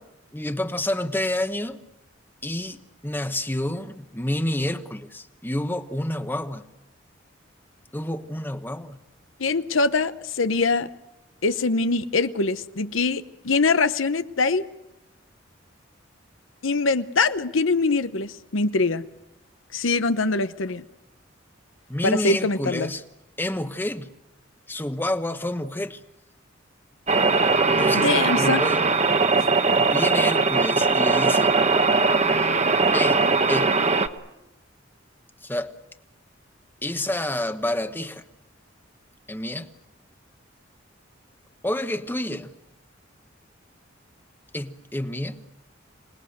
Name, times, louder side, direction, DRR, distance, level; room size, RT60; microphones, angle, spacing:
voice 1, 0.3-1.8 2.4-6.7 7.9-9.0 21.9-23.0 23.4-24.1 24.7-26.0 27.7-28.8 29.8-31.5 32.9-33.8 35.4-35.7 36.8-38.2 39.3-39.7 41.6-42.5 44.5-45.4, left 1 dB, 10° left, 1.1 m, -29 dB
voice 2, 9.4-10.9 11.4-14.6 16.6-19.0 19.7-20.8 22.0-22.9 27.9-28.6, left 3 dB, 85° left, 0.9 m, -23 dB
sound 1, 27.1-34.1, right 4 dB, 35° right, 1.1 m, -20 dB
26.5 x 19.5 x 8.0 m
head